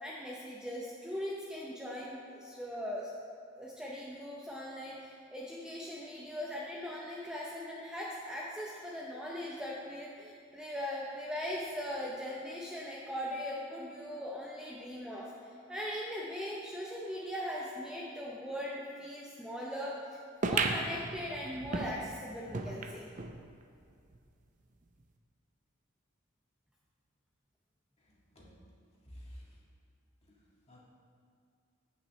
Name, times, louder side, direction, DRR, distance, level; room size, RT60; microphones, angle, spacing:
voice 1, 0.0-3.1 3.5-15.3 15.7-20.0 20.4-23.1, equal, 5° right, -5 dB, 0.7 m, -40 dB
sound 1, 20.4-23.4 23.8-23.9 24.1-24.2 25.0-25.1, right 3 dB, 40° right, 0.5 m, -35 dB
voice 2, 28.1-28.6 29.1-29.5 30.2-30.4 30.7-30.8, equal, 30° left, -5 dB, 1.9 m, -51 dB
15.5 x 5.7 x 3.2 m, 2.4 s
head